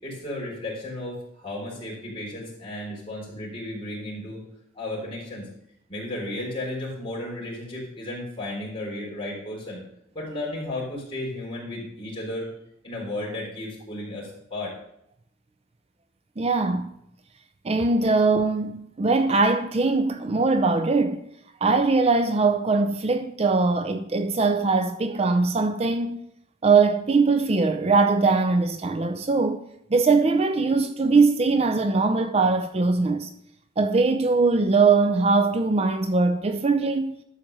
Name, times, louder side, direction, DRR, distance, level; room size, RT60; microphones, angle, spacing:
voice 1, 0.0-4.4 4.7-5.5 5.9-9.8 10.1-12.5 12.8-14.8, left 1 dB, 30° left, 3.7 m, -34 dB
voice 2, 16.4-16.9 17.6-21.2 21.6-26.2 26.6-29.6 29.9-33.3 33.8-37.2, right 3 dB, 35° right, 0.5 m, -21 dB
12.0 x 4.3 x 6.5 m
head